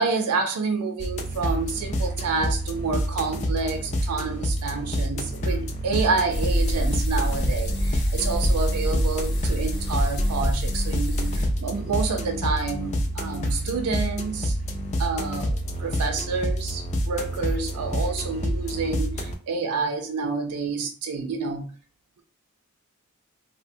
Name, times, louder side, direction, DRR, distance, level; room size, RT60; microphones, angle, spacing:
voice 1, 0.0-14.5 15.0-21.7, right 4 dB, 85° right, 4 dB, 0.4 m, -28 dB
sound 1, 1.0-19.3, equal, 30° left, 0.3 m, -28 dB
sound 2, 6.3-11.5, equal, 50° left, 0.7 m, -26 dB
2.6 x 2.1 x 2.6 m, 0.38 s
head